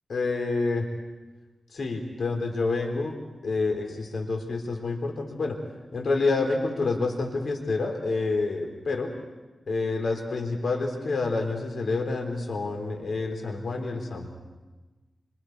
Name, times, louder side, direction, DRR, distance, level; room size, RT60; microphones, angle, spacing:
voice 1, 0.1-0.9 1.7-3.1 3.4-5.6 5.9-9.1 9.7-14.3, left 3 dB, 80° left, 2 dB, 3.7 m, -28 dB
29.5 x 26.5 x 4.7 m, 1.2 s
wide cardioid pair, 110°, 0 cm